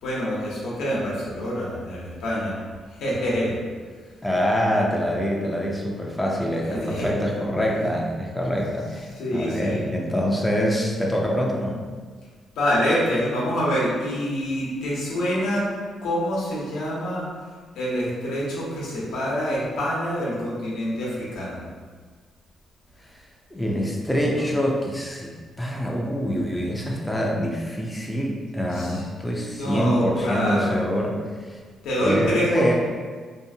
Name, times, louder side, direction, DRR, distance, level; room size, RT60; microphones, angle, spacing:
voice 1, 0.0-2.6 2.9-3.6 6.6-7.1 9.1-9.8 12.6-15.7 16.0-17.3 17.7-21.6 28.7-29.0 29.6-30.8 31.8-32.7, equal, 90° left, -6 dB, 0.8 m, -26 dB
voice 2, 4.2-11.8 23.5-31.2 31.5-31.6 32.0-32.7, equal, 10° left, -2 dB, 0.4 m, -25 dB
2.7 x 2.4 x 2.7 m, 1.5 s
cardioid pair, 110°, 0 cm